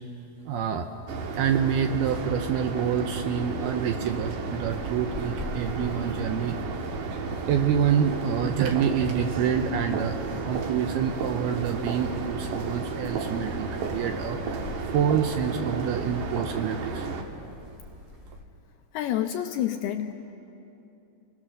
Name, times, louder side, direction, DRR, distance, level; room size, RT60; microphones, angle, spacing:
voice 1, 0.5-0.9 1.4-6.6 7.5-14.6 14.9-17.1, right 8 dB, 80° right, 6 dB, 2.4 m, -27 dB
sound 1, 1.1-17.2, right 4 dB, 60° right, 2.5 m, -33 dB
sound 2, 4.6-18.4, left 3 dB, 10° left, 2.1 m, -45 dB
voice 2, 18.9-20.1, left 11 dB, 80° left, 5 dB, 2.4 m, -28 dB
28.5 x 20.5 x 6.6 m, 2.8 s
omnidirectional pair, 5.2 m